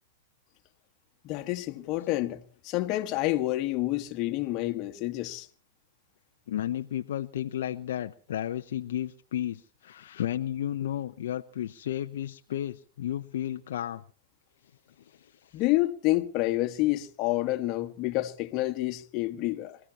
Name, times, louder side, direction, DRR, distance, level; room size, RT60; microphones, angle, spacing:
voice 1, 1.2-5.5 15.5-19.8, left 17 dB, 40° left, 1.5 m, -28 dB
voice 2, 6.5-14.0 15.1-15.6, left 11 dB, 70° left, 0.7 m, -33 dB
26.5 x 15.5 x 2.9 m
hypercardioid pair, 120°, 0 cm